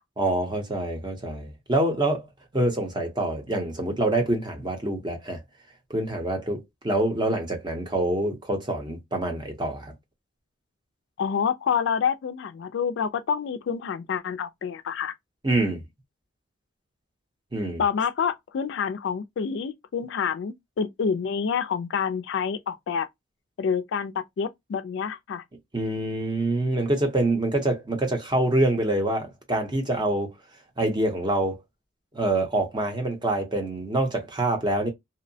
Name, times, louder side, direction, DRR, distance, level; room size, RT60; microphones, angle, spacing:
voice 1, 0.2-2.3 2.5-5.4 5.9-9.9 15.4-15.8 17.5-17.8 25.7-30.3 30.8-31.6 32.1-34.9, right 1 dB, 20° right, 0.7 m, -26 dB
voice 2, 11.2-15.1 17.8-23.1 23.6-25.4, left 6 dB, 60° left, 0.3 m, -27 dB
2.7 x 2.0 x 2.6 m
head